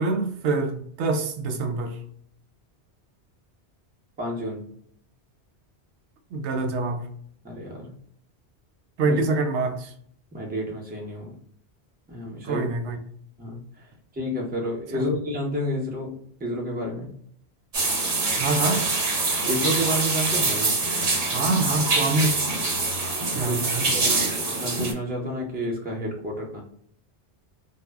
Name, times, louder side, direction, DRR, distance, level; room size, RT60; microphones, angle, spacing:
voice 1, 0.0-2.0 6.3-7.0 9.0-9.9 12.4-13.0 14.9-15.0 18.4-18.8 21.3-22.3 23.3-23.9, right 3 dB, 85° right, 0.9 m, -25 dB
voice 2, 4.2-4.7 7.4-7.9 9.0-9.2 10.3-11.4 12.1-12.7 13.4-13.9 14.1-17.1 19.4-20.8 23.4-23.6 23.9-26.6, equal, 10° right, 0.6 m, -30 dB
sound 1, 17.7-24.9, right 3 dB, 55° right, 1.0 m, -24 dB
2.1 x 2.1 x 3.3 m
omnidirectional pair, 1.1 m